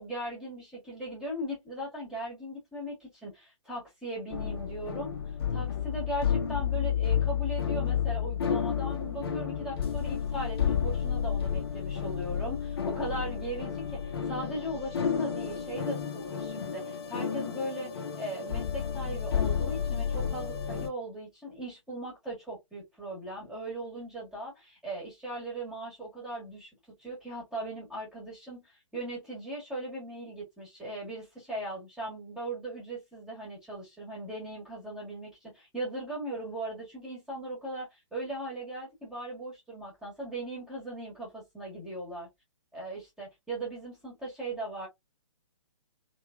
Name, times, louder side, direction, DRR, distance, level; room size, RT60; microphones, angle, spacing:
voice 1, 0.0-5.1 5.5-26.7 27.0-42.3 42.7-44.9, right 1 dB, 5° right, 1.5 m, -38 dB
sound 1, 4.3-20.9, left 8 dB, 45° left, 1.1 m, -31 dB
3.3 x 3.2 x 2.4 m
figure-of-eight pair, 130°, 17 cm